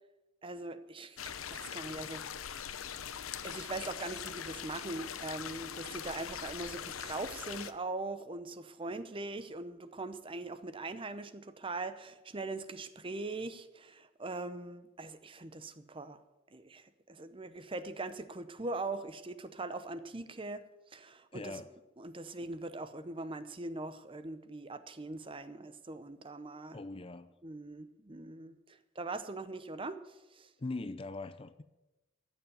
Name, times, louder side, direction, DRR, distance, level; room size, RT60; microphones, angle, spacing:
voice 1, 0.4-2.6 3.4-16.2 16.5-21.6 22.0-26.8 27.4-30.5, right 2 dB, 25° right, 12 dB, 0.7 m, -41 dB
sound 1, 1.2-7.7, left 8 dB, 90° left, 0.8 m, -42 dB
voice 2, 21.3-21.7 26.7-27.3 30.6-31.6, left 2 dB, 25° left, 14 dB, 0.5 m, -41 dB
14.5 x 7.1 x 9.3 m, 1.0 s
head